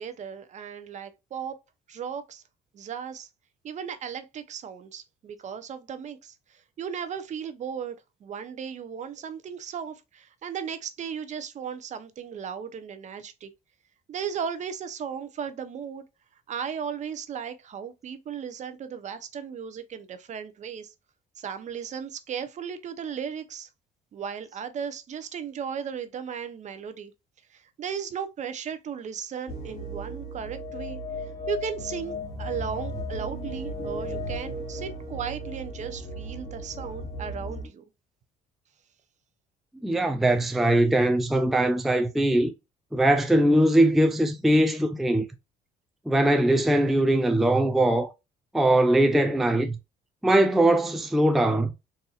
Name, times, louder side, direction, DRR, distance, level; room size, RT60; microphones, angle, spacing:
voice 1, 0.0-1.6 1.9-2.4 2.7-3.3 3.6-6.4 6.8-13.5 14.1-16.0 16.5-20.9 21.4-23.7 24.1-27.1 27.5-31.0 31.5-37.8, right 7 dB, 45° right, 0.6 m, -36 dB
sound 1, 29.5-37.7, equal, 35° left, 2.3 m, -35 dB
voice 2, 39.8-42.5 42.9-45.2 46.1-48.1 48.5-49.8 50.2-51.7, right 1 dB, ahead, 0.3 m, -21 dB
4.1 x 2.6 x 2.3 m
cardioid pair, 110°, 17 cm